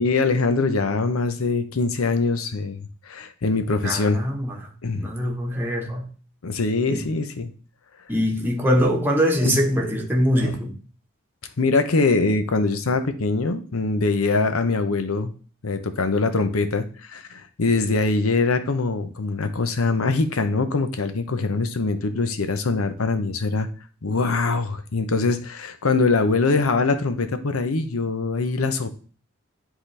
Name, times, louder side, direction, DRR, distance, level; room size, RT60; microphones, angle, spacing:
voice 1, 0.0-4.2 4.8-5.1 6.4-7.5 9.4-9.6 10.4-10.5 11.6-15.3 15.6-23.7 24.0-28.9, left 3 dB, 85° left, 0.8 m, -23 dB
voice 2, 3.8-4.5 4.9-6.1 6.9-7.1 8.1-10.7, equal, 10° right, 1.2 m, -23 dB
9.9 x 3.9 x 3.3 m
head